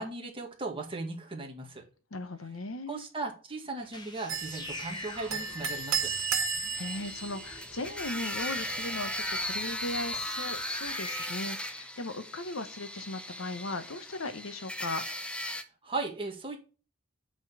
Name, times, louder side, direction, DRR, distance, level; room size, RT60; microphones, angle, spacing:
voice 1, 0.0-1.8 2.9-6.1 15.8-16.6, right 3 dB, 25° right, 2.0 m, -37 dB
voice 2, 2.1-3.0 6.2-15.0, left 2 dB, 85° left, 1.1 m, -38 dB
sound 1, 3.8-11.3, left 2 dB, 20° left, 1.4 m, -46 dB
sound 2, 4.3-10.2, right 6 dB, 75° right, 2.3 m, -35 dB
sound 3, 4.7-15.6, left 1 dB, 5° left, 0.7 m, -38 dB
8.2 x 4.5 x 6.8 m
head